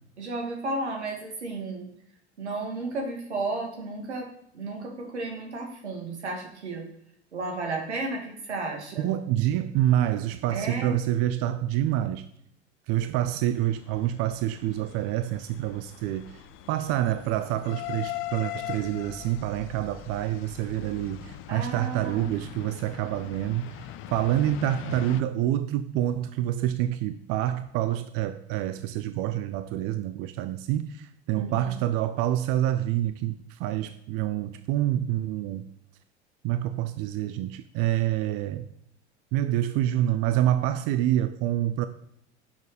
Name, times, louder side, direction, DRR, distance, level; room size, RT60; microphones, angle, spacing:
voice 1, 0.2-1.9 2.4-6.9 7.3-9.1 10.5-11.0 21.5-22.3 31.3-31.8, right 2 dB, 75° right, 2.3 m, -33 dB
voice 2, 9.0-12.2 12.9-16.4 16.7-35.6 36.4-38.7 39.3-41.9, right 12 dB, 45° right, 0.6 m, -27 dB
sound 1, 13.5-25.2, left 13 dB, 40° left, 0.7 m, -41 dB
8.6 x 6.6 x 5.1 m
figure-of-eight pair, 80°, 34 cm